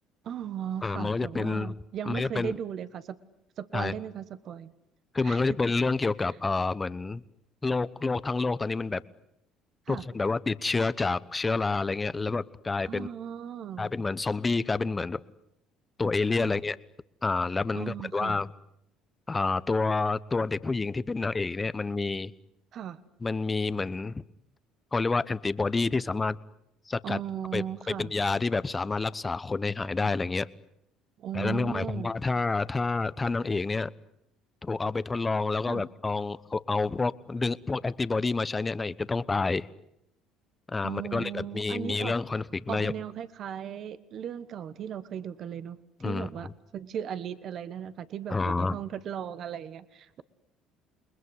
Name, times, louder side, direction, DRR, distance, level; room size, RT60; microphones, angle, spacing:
voice 1, 0.2-3.2 3.6-4.7 5.2-5.6 9.9-10.0 12.8-13.9 16.3-16.6 17.7-18.4 22.7-23.0 27.0-28.1 31.2-32.1 35.7-35.8 40.8-42.1 42.7-45.8 46.0-50.2, right 9 dB, 55° right, 13 dB, 1.4 m, -37 dB
voice 2, 0.8-1.7 2.0-2.5 3.7-4.0 5.1-7.2 7.6-9.0 9.9-13.1 13.8-15.2 16.0-16.8 17.2-18.5 19.3-22.3 23.2-24.2 24.9-26.4 26.9-27.2 27.5-30.5 31.3-33.9 34.6-39.7 40.7-42.9 46.0-46.5 48.3-48.8, left 3 dB, 20° left, 16 dB, 1.0 m, -28 dB
29.0 x 20.5 x 9.7 m, 0.78 s
supercardioid pair, 95°, 0 cm